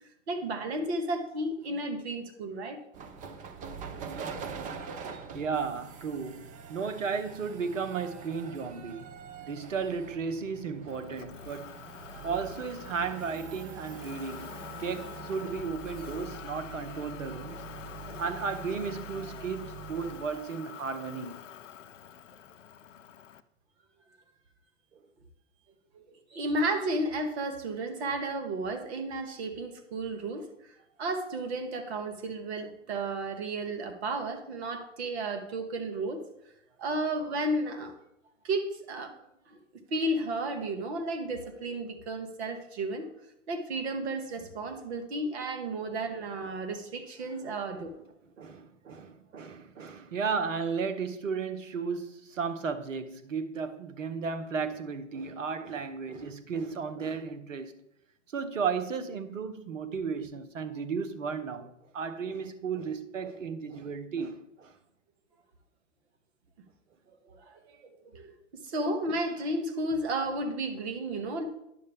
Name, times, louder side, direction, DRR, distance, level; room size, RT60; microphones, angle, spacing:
voice 1, 0.3-2.8 25.9-26.0 26.3-36.2 36.8-37.9 38.4-39.1 39.5-43.0 43.5-47.9 67.2-68.3 68.6-71.4, right 2 dB, 55° right, 1.7 m, -33 dB
sound 1, 2.9-20.3, right 5 dB, 20° right, 0.7 m, -44 dB
voice 2, 5.3-9.1 9.4-11.8 12.2-14.5 14.8-17.6 18.2-21.4 47.4-47.6 48.4-57.8 58.3-64.7, right 5 dB, 75° right, 1.1 m, -34 dB
Motor vehicle (road), 10.9-23.4, left 9 dB, 75° left, 0.6 m, -46 dB
10.0 x 6.5 x 3.5 m
hypercardioid pair, 115°, 38 cm